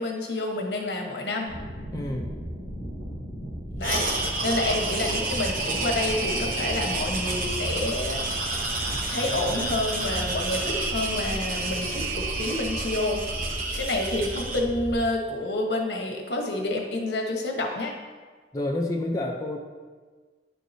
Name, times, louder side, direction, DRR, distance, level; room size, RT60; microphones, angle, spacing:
voice 1, 0.0-1.5 3.8-8.5 9.1-13.2 13.8-17.9, left 2 dB, 65° left, 1 dB, 1.1 m, -29 dB
sound 1, 1.5-15.0, equal, 75° right, 2.0 m, -36 dB
voice 2, 1.9-2.3 18.5-19.6, left 1 dB, 20° left, -1 dB, 0.4 m, -28 dB
sound 2, 3.8-14.6, right 2 dB, 50° right, 0.8 m, -30 dB
10.0 x 4.6 x 2.7 m, 1.4 s
head